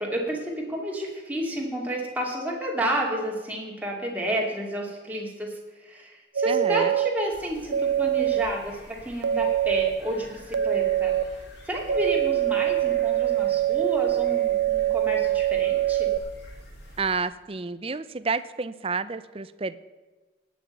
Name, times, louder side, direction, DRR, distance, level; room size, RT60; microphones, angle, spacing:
voice 1, 0.0-11.1 11.7-16.1, right 1 dB, 10° right, -1 dB, 2.6 m, -30 dB
sound 1, 6.3-7.1 7.7-8.5 9.2-9.9 10.5-11.2 11.9-16.2, right 12 dB, 80° right, 0.5 m, -24 dB
voice 2, 6.5-6.9 17.0-19.8, right 4 dB, 30° right, 15 dB, 0.5 m, -30 dB
sound 2, 7.3-17.2, equal, 60° left, 4.7 m, -47 dB
18.0 x 6.3 x 9.2 m, 1.2 s
head